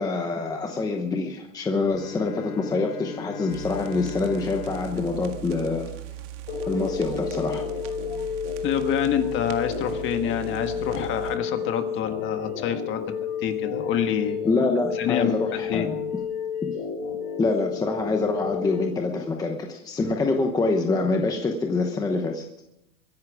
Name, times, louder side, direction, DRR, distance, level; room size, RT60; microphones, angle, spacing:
voice 1, 0.0-5.9 6.7-7.6 14.4-16.0 16.6-16.7 17.4-22.4, left 3 dB, 10° left, 2 dB, 0.9 m, -26 dB
Bowed string instrument, 1.8-6.4, left 8 dB, 85° left, 1.7 m, -39 dB
sound 1, 3.5-11.4, right 13 dB, 60° right, 1.8 m, -39 dB
sound 2, 6.5-18.9, left 7 dB, 55° left, 5.3 m, -31 dB
voice 2, 8.6-13.0 13.4-14.4 14.9-15.9, left 9 dB, 30° left, 7 dB, 1.5 m, -27 dB
23.0 x 10.5 x 4.8 m, 0.85 s
supercardioid pair, 165°, 41 cm